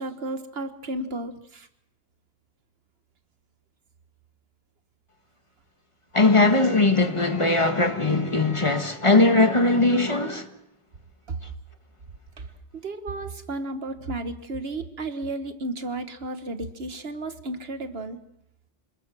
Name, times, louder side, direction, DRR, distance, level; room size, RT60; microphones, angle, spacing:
voice 1, 0.0-1.7 11.3-11.4 12.4-12.5 12.7-18.2, right 2 dB, 70° right, 1.5 m, -33 dB
voice 2, 6.1-10.5, left 2 dB, 30° left, 1.6 m, -20 dB
27.5 x 20.0 x 6.1 m
omnidirectional pair, 1.1 m